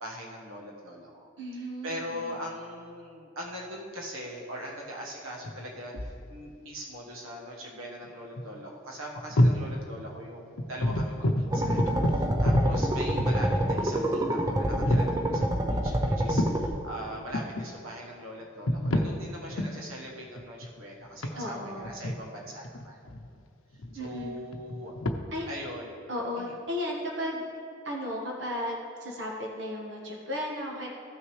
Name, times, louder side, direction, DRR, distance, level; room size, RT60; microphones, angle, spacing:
voice 1, 0.0-23.0 23.9-24.9 25.5-25.9 26.4-26.6, equal, 80° right, -2 dB, 1.4 m, -41 dB
voice 2, 1.4-2.4 21.3-22.0 23.9-24.3 25.3-25.5 26.1-27.5 27.8-30.9, left 1 dB, 55° right, -2 dB, 1.4 m, -35 dB
sound 1, 5.4-6.3 8.0-8.1 8.4-8.6 9.2-9.7 10.0-10.2 10.6-13.7 14.3-14.4 14.7-15.1 16.0-16.6 17.1-17.7 18.4-19.1 19.5-19.8 20.4-23.4 23.7-25.1, left 1 dB, 75° left, 0.7 m, -28 dB
sound 2, 11.5-16.7, right 1 dB, 15° right, 0.5 m, -27 dB
15.0 x 6.1 x 3.2 m, 2.4 s
head